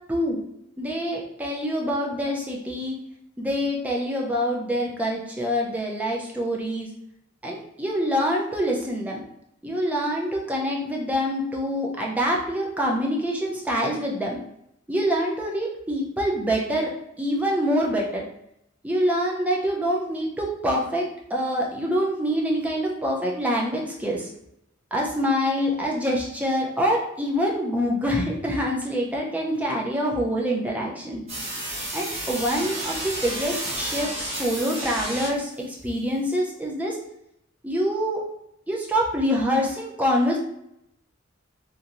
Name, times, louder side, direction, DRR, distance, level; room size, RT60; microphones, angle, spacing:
voice 1, 0.1-0.4 0.8-2.9 3.4-6.9 7.4-9.2 9.6-14.4 14.9-16.9 17.2-18.2 18.8-21.1 21.3-24.3 24.9-31.2 31.9-35.5 35.8-37.0 37.6-38.2 38.7-40.4, equal, 10° right, -2 dB, 0.5 m, -25 dB
sound 1, 31.3-35.6, right 1 dB, 30° right, 1.1 m, -31 dB
3.0 x 2.6 x 2.5 m, 0.79 s
head